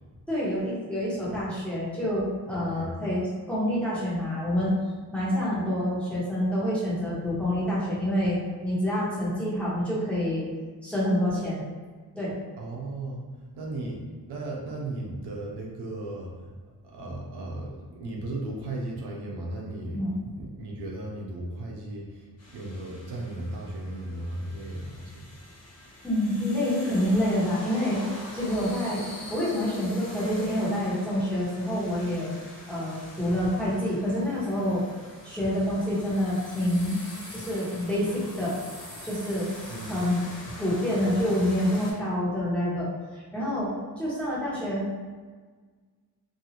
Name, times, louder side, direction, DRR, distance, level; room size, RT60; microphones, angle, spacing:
voice 1, 0.3-4.7 5.1-10.5 10.8-11.6 12.2-12.3 19.9-20.2 26.0-28.0 28.3-29.0 29.3-32.4 32.7-34.9 35.2-37.0 37.3-38.6 39.0-39.5 39.9-40.2 40.6-43.7 44.0-45.0, left 1 dB, 5° left, -9 dB, 1.2 m, -27 dB
voice 2, 2.5-2.9 12.6-13.2 13.6-16.5 16.8-20.0 20.4-25.3 39.7-39.9, right 2 dB, 90° right, -2 dB, 0.7 m, -36 dB
sound 1, 22.4-41.9, left 1 dB, 40° left, 1.0 m, -44 dB
2.7 x 2.5 x 2.8 m, 1.5 s
cardioid pair, 85°, 39 cm